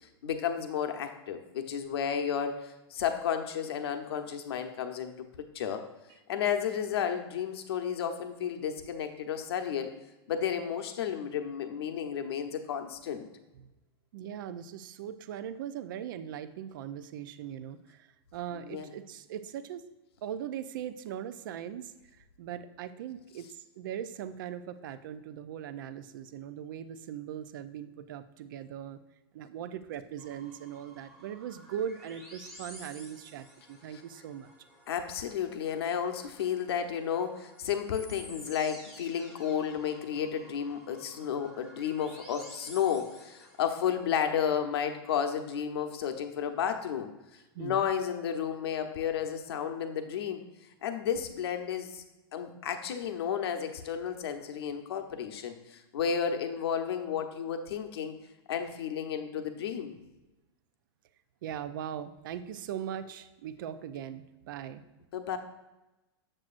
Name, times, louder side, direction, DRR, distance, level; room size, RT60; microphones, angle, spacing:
voice 1, 0.2-5.8 6.3-9.9 10.3-13.3 18.6-18.9 33.9-34.0 34.9-47.1 47.6-50.4 50.8-52.0 52.3-58.1 58.5-59.9 65.1-65.4, left 8 dB, 75° left, 6 dB, 0.8 m, -32 dB
voice 2, 14.1-19.8 20.2-29.0 29.3-34.5 47.5-47.9 61.4-64.8, right 9 dB, 55° right, 12 dB, 0.5 m, -40 dB
sound 1, 30.2-44.0, equal, ahead, 1.0 m, -53 dB
7.6 x 7.4 x 2.5 m, 1.0 s
supercardioid pair, 170°, 13 cm